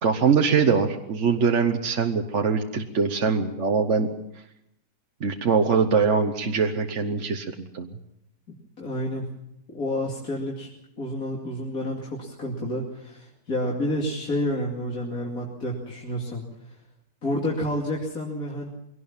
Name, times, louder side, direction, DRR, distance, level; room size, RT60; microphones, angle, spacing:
voice 1, 0.0-4.1 5.2-7.5 7.7-7.9, right 5 dB, 45° right, 4 dB, 1.3 m, -22 dB
voice 2, 8.8-9.3 9.7-10.7 11.0-16.4 17.2-18.7, left 1 dB, 55° left, -3 dB, 3.0 m, -29 dB
22.5 x 17.5 x 7.2 m, 0.82 s
omnidirectional pair, 1.9 m